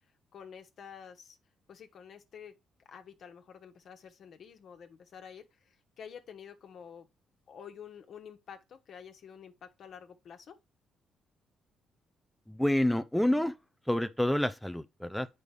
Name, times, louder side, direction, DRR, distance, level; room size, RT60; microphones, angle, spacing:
voice 1, 0.3-1.4 1.7-2.5 2.8-7.1 7.5-10.6, left 7 dB, 60° left, 1.3 m, -49 dB
voice 2, 12.5-13.5 13.9-15.3, left 1 dB, 5° left, 0.5 m, -28 dB
8.1 x 5.3 x 3.4 m
cardioid pair, 90°, 0 cm